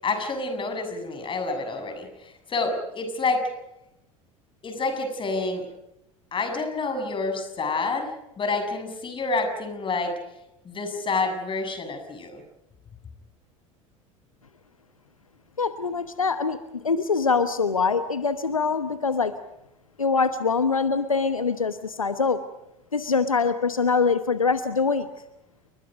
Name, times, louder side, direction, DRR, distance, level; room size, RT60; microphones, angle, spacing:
voice 1, 0.0-3.5 4.6-5.7 6.3-10.1 10.7-12.4, left 3 dB, 30° left, 6 dB, 7.1 m, -28 dB
voice 2, 15.6-19.3 20.0-22.4 22.9-25.1, left 5 dB, 90° left, 12 dB, 1.1 m, -24 dB
29.5 x 23.5 x 5.2 m, 0.86 s
figure-of-eight pair, 70°, 17 cm